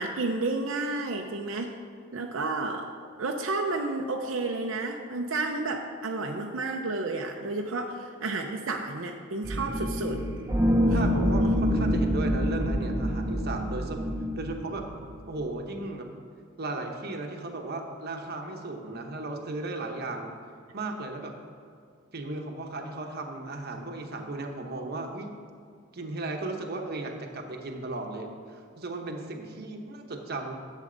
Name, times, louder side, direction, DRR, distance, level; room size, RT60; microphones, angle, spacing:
voice 1, 0.0-1.7 2.1-2.9 3.2-10.2 10.9-11.0, right 3 dB, 85° right, 2 dB, 0.6 m, -31 dB
sound 1, 9.4-15.4, equal, 15° right, 0.7 m, -26 dB
voice 2, 10.9-14.0 14.4-14.9 15.3-16.1 16.6-20.4 20.7-21.3 22.1-25.3 25.9-30.5, right 2 dB, 50° right, 3 dB, 1.0 m, -35 dB
11.0 x 7.4 x 3.9 m, 2.2 s
head